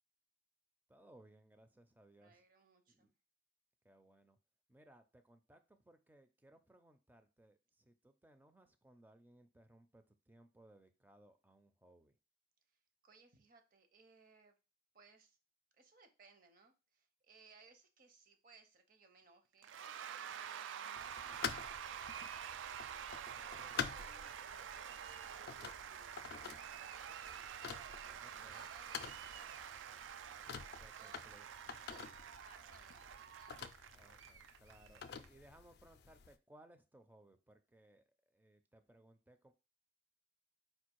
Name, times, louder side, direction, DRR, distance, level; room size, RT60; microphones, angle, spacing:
voice 1, 0.9-2.4 2.9-3.1 3.8-4.4 4.7-12.2 28.2-28.7 30.8-31.5 33.9-39.5, right 1 dB, 10° right, 8 dB, 0.4 m, -64 dB
voice 2, 2.2-3.1 12.7-14.6 14.9-15.4 15.7-19.7 20.1-22.3 22.7-25.9 26.1-30.0 31.0-32.1 32.4-33.7, right 4 dB, 50° right, 7 dB, 0.7 m, -66 dB
Cheering / Applause / Crowd, 19.6-35.3, right 8 dB, 85° right, 0.3 m, -48 dB
sound 1, 21.0-36.3, left 7 dB, 60° left, 0.4 m, -49 dB
4.4 x 2.3 x 4.5 m, 0.30 s
head